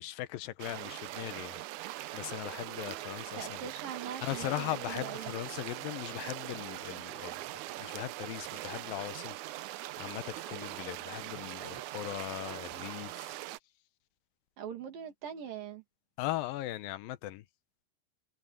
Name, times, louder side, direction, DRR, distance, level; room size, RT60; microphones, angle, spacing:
voice 1, 0.0-3.7 4.2-7.4 7.8-13.4 16.2-17.4, left 15 dB, 80° left, 2.5 m, -39 dB
sound 1, 0.6-13.6, right 17 dB, 90° right, 1.7 m, -41 dB
voice 2, 3.4-5.4 14.6-15.8, right 8 dB, 70° right, 4.3 m, -42 dB
omnidirectional pair, 4.1 m